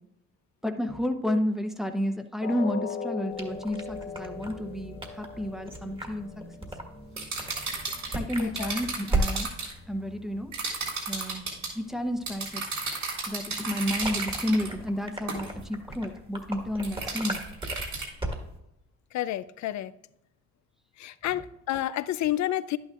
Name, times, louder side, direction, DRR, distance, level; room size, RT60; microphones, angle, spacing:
voice 1, 0.6-6.3 8.1-9.5 9.9-10.5 11.1-11.5 11.7-12.6 13.2-17.5, left 1 dB, ahead, 0.8 m, -31 dB
sound 1, 2.4-8.4 8.8-9.0 9.4-9.5, left 5 dB, 45° left, 0.9 m, -40 dB
sound 2, 3.3-18.6, right 2 dB, 15° right, 1.5 m, -37 dB
sound 3, 7.2-9.7 10.5-11.7 12.3-14.7 15.3-15.5 16.8-18.1, right 4 dB, 70° right, 3.7 m, -33 dB
voice 2, 8.4-8.8 19.1-19.9 21.0-22.8, left 13 dB, 65° left, 0.5 m, -30 dB
11.0 x 9.2 x 2.4 m
cardioid pair, 90°, 30 cm